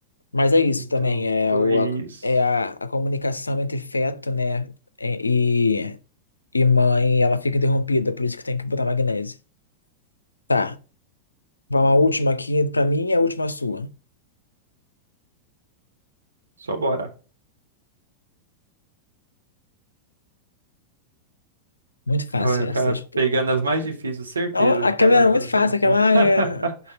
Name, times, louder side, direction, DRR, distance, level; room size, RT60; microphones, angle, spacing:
voice 1, 0.3-4.7 5.0-6.0 6.5-9.3 10.5-10.8 11.7-13.9 22.1-23.0 24.5-26.6, left 3 dB, 80° left, 0.4 m, -21 dB
voice 2, 1.5-2.1 16.6-17.1 22.4-26.7, right 3 dB, 75° right, 1.3 m, -25 dB
5.5 x 4.2 x 5.5 m
figure-of-eight pair, 90°, 0 cm